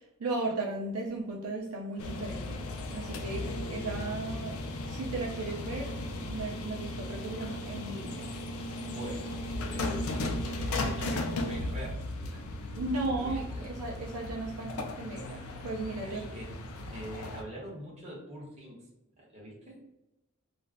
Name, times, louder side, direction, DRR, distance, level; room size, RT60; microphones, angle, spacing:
voice 1, 0.2-4.6 4.9-5.9 6.3-8.3 12.8-16.3, right 2 dB, 85° right, 0 dB, 0.5 m, -36 dB
sound 1, 2.0-17.4, left 1 dB, 70° left, 0.4 m, -36 dB
voice 2, 8.8-12.5 12.9-13.7 16.0-16.5 16.8-18.8 19.2-19.8, right 1 dB, 30° right, -4 dB, 0.9 m, -44 dB
2.4 x 2.1 x 3.4 m, 0.92 s
head